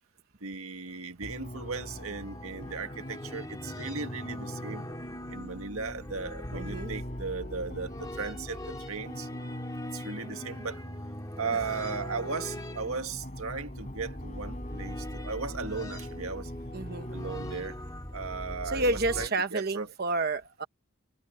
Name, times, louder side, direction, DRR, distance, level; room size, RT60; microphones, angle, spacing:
voice 1, 0.4-4.9 5.3-9.3 9.9-10.8 11.4-16.5 17.1-17.8 18.1-19.9, right 4 dB, 80° right, 1.7 m, -37 dB
sound 1, 1.0-19.3, left 1 dB, 15° left, 2.0 m, -42 dB
sound 2, 1.2-17.9, equal, 35° left, 5.4 m, -43 dB
voice 2, 6.5-6.9 16.7-17.1 18.6-20.6, right 2 dB, 45° right, 1.1 m, -30 dB
head